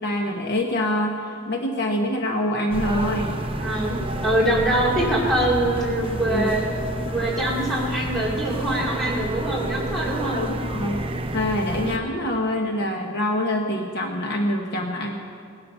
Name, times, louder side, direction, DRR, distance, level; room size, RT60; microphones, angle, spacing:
voice 1, 0.0-3.4 6.3-6.4 10.3-11.0 11.3-15.1, left 1 dB, 50° left, 2 dB, 1.1 m, -25 dB
sound 1, 2.7-12.0, right 1 dB, 25° right, 0.7 m, -29 dB
sound 2, 3.1-9.7, left 1 dB, 90° left, 2.3 m, -41 dB
voice 2, 3.5-6.6 7.1-10.5, right 1 dB, ahead, -5 dB, 2.8 m, -24 dB
18.0 x 12.0 x 5.7 m, 2.3 s
head